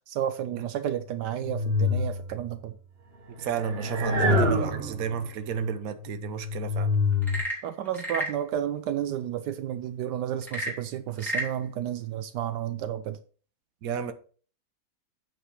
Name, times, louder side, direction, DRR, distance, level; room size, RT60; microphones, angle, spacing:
voice 1, 0.1-2.7 7.6-13.2, right 10 dB, 80° right, 1.2 m, -31 dB
sound 1, 1.2-2.6 3.5-5.3 5.9-7.4, left 2 dB, 40° right, 1.3 m, -27 dB
voice 2, 3.4-6.9 13.8-14.1, right 7 dB, 60° right, 1.2 m, -31 dB
Frog / Percussion / Wood, 7.1-8.4 10.4-11.6, right 1 dB, ahead, 2.6 m, -32 dB
8.5 x 4.0 x 6.3 m
omnidirectional pair, 1.9 m